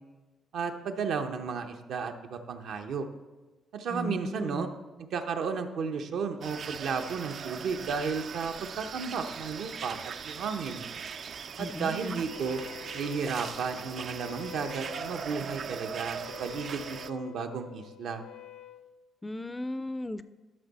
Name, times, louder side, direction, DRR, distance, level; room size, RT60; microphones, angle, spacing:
voice 1, 0.5-3.0 3.7-4.7 5.0-10.8 11.6-12.6 12.9-18.2, right 5 dB, 75° right, 5 dB, 0.8 m, -33 dB
voice 2, 3.9-4.6 11.6-12.2 19.2-20.2, left 1 dB, 15° left, 13 dB, 0.4 m, -36 dB
sound 1, 6.4-17.1, right 6 dB, 55° right, 0.4 m, -40 dB
Wind instrument woodwind instrument, 12.2-18.9, left 12 dB, 90° left, 0.4 m, -48 dB
12.0 x 6.1 x 4.1 m, 1.2 s
cardioid pair, 90°, 0 cm